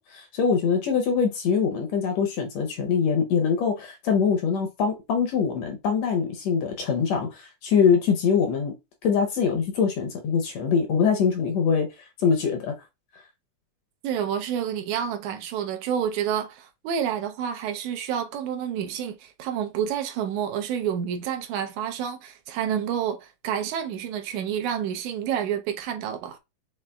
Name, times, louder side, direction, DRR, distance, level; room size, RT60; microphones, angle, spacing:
voice 1, 0.1-8.7 9.0-11.9 12.2-12.7, left 6 dB, 70° left, 1.7 m, -23 dB
voice 2, 14.0-26.4, right 9 dB, 80° right, 1.9 m, -29 dB
6.7 x 3.2 x 2.2 m
omnidirectional pair, 3.5 m